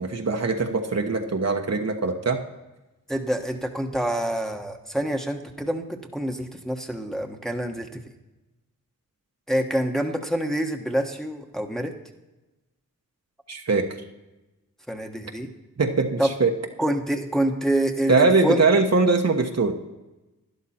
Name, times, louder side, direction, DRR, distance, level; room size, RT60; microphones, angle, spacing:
voice 1, 0.0-2.4 13.5-13.9 15.8-16.5 18.1-19.7, right 3 dB, 50° right, 4 dB, 1.2 m, -21 dB
voice 2, 3.1-8.0 9.5-11.9 14.9-15.5 16.2-16.3 16.8-18.6, right 1 dB, ahead, 3 dB, 1.3 m, -26 dB
12.0 x 10.5 x 4.3 m, 1.1 s
cardioid pair, 55°, 34 cm